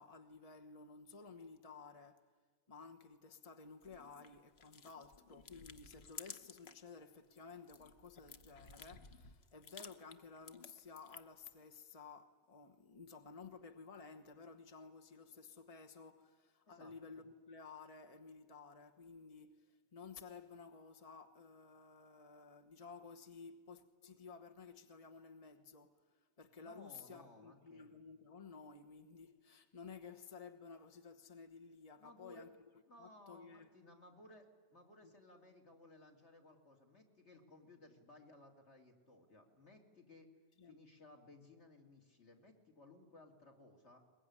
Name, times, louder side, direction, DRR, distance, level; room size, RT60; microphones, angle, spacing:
voice 1, 0.0-2.3 2.7-32.5 33.0-33.7 35.0-35.2 40.6-40.8, left 5 dB, 35° left, 1.3 m, -55 dB
sound 1, 3.8-6.9 7.2-11.5, left 6 dB, 65° left, 1.2 m, -56 dB
voice 2, 26.6-27.9 32.0-32.5 32.8-40.3 40.7-44.0, left 2 dB, 85° left, 3.4 m, -60 dB
22.0 x 21.5 x 9.8 m
omnidirectional pair, 1.1 m